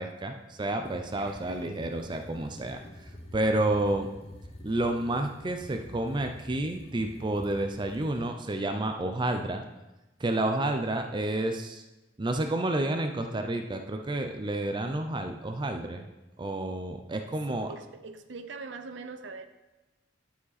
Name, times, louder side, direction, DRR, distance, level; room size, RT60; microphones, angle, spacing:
voice 1, 0.0-2.8 3.3-4.1 4.6-9.6 10.2-11.8 12.2-16.0 16.4-17.7, right 1 dB, 25° right, 5 dB, 0.5 m, -30 dB
sound 1, 0.8-8.3, equal, 35° left, 1.1 m, -47 dB
voice 2, 1.2-1.7 4.0-4.1 17.1-19.5, right 4 dB, 70° right, 9 dB, 0.6 m, -43 dB
11.0 x 5.0 x 4.1 m, 1.0 s
head